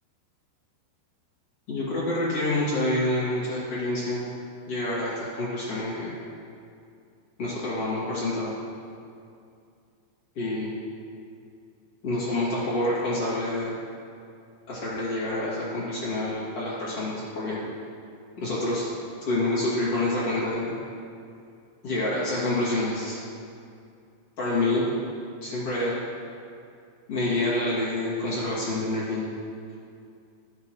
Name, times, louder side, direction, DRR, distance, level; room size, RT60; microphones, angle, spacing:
voice 1, 1.7-4.3 4.7-6.1 7.4-8.5 10.3-10.7 12.0-13.7 14.7-17.6 18.4-18.9 19.2-20.7 21.8-23.2 24.4-24.8 25.4-26.0 27.1-29.3, left 1 dB, 40° left, -9 dB, 2.8 m, -27 dB
13.5 x 11.5 x 3.2 m, 2.4 s
omnidirectional pair, 5.2 m